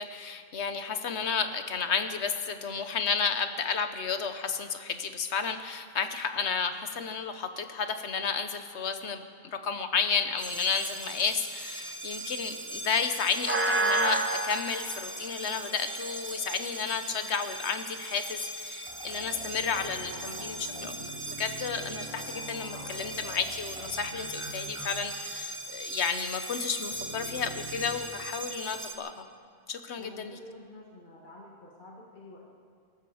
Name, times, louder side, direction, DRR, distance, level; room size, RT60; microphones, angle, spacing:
voice 1, 0.0-9.2 9.5-20.9 21.3-29.2 29.7-30.4, left 6 dB, 90° left, 9 dB, 1.3 m, -32 dB
sound 1, 10.4-28.9, right 2 dB, 10° right, 1.2 m, -36 dB
sound 2, 18.9-24.9 25.1-25.2 26.9-27.9, right 1 dB, 30° right, 2.3 m, -44 dB
voice 2, 30.0-32.5, left 2 dB, 50° left, -3 dB, 1.9 m, -49 dB
22.0 x 13.0 x 4.9 m, 2.1 s
omnidirectional pair, 1.1 m